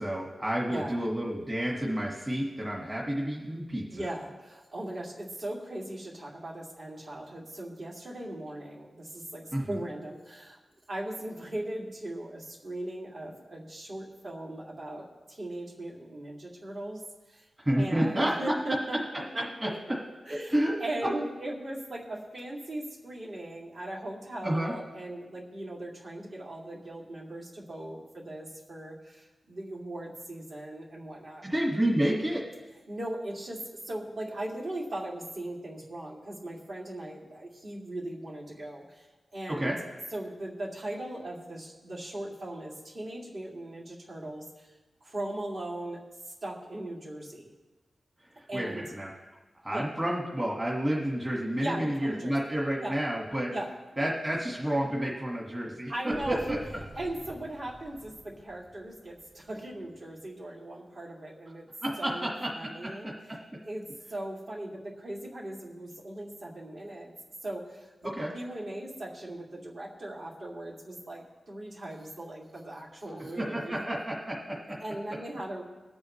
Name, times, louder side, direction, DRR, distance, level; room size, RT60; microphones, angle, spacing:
voice 1, 0.0-4.1 9.5-9.8 17.6-18.8 19.6-20.0 20.3-21.1 24.4-24.7 31.4-32.4 39.5-39.8 48.3-49.1 49.6-53.5 54.0-56.6 61.8-63.4 68.2-68.3 73.4-74.8, right 1 dB, 20° right, -3 dB, 1.7 m, -30 dB
voice 2, 0.7-1.0 3.9-10.6 10.9-17.0 17.3-17.4 17.7-19.0 19.3-19.7 20.3-31.4 32.9-39.1 39.3-39.7 40.1-44.7 45.0-47.5 48.5-48.8 49.7-49.9 51.6-52.4 52.8-53.0 53.5-53.7 55.9-56.6 57.0-61.7 62.0-63.1 63.7-67.1 67.4-73.8 74.8-75.6, right 1 dB, 55° right, -4 dB, 2.6 m, -38 dB
Motorcycle, 56.1-60.0, right 1 dB, 35° right, 2.4 m, -48 dB
21.0 x 8.6 x 3.2 m, 1.2 s
wide cardioid pair, 165°, 0 cm